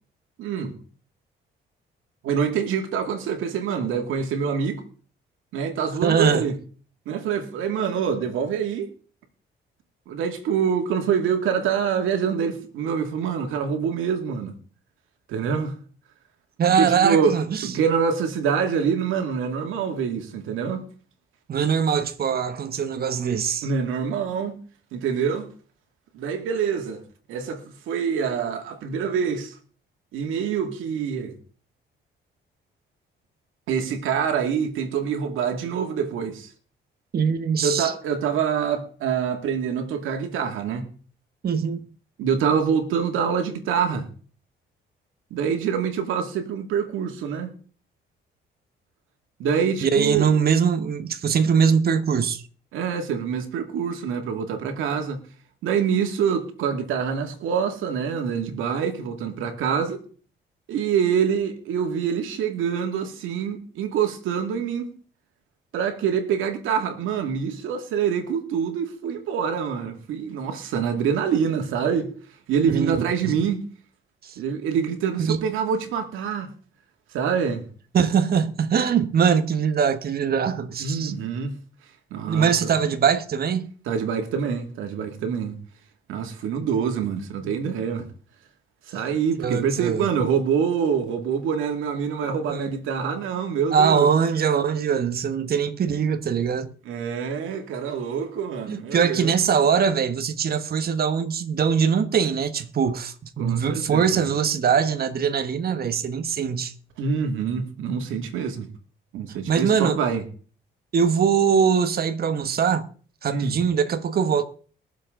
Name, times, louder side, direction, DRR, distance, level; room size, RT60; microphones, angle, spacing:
voice 1, 0.4-0.8 2.2-4.8 5.5-6.6 7.1-8.9 10.1-14.6 15.3-15.8 16.7-17.3 17.6-20.9 23.6-24.6 24.9-25.5 26.1-27.0 27.3-29.5 30.1-31.4 33.7-36.5 37.6-40.9 42.2-44.1 45.3-47.5 49.4-50.3 52.7-55.2 55.6-60.0 60.7-64.9 65.7-72.1 72.5-73.6 74.4-76.5 77.1-77.6 80.8-81.6 82.1-82.7 83.9-85.6 86.1-88.1 88.9-94.1 96.9-99.3 103.4-104.2 107.0-108.7 109.1-110.2 113.3-113.6, right 7 dB, 85° right, 2.3 m, -25 dB
voice 2, 6.0-6.5 16.6-17.7 21.5-23.7 37.1-37.9 41.4-41.8 49.8-52.4 72.7-73.3 74.2-74.4 75.3-75.4 77.9-81.1 82.3-83.7 89.4-90.1 92.5-92.7 93.7-96.7 98.7-106.7 109.5-110.0 110.9-112.9 113.2-114.4, right 7 dB, 50° right, 1.4 m, -22 dB
22.0 x 7.4 x 3.8 m
cardioid pair, 90°, 20 cm